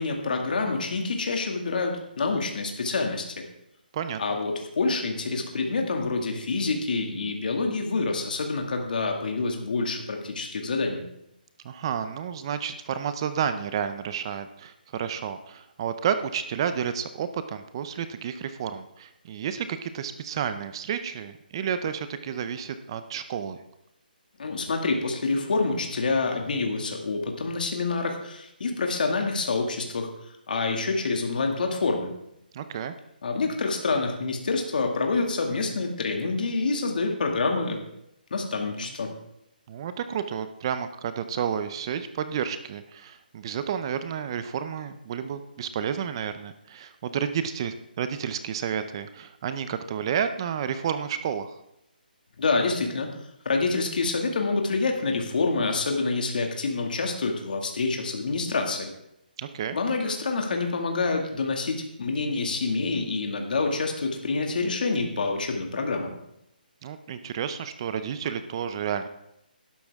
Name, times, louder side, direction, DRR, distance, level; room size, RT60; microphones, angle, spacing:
voice 1, 0.0-3.4 4.2-11.0 24.4-30.1 30.5-32.1 33.2-37.8 38.3-39.1 52.4-53.1 53.5-58.9 59.7-66.1, left 3 dB, 60° left, 2 dB, 2.2 m, -27 dB
voice 2, 11.6-23.6 32.5-32.9 39.7-51.6 59.4-59.8 66.8-69.1, right 8 dB, 30° right, 11 dB, 0.6 m, -31 dB
12.0 x 11.5 x 3.6 m, 0.81 s
hypercardioid pair, 165°, 5 cm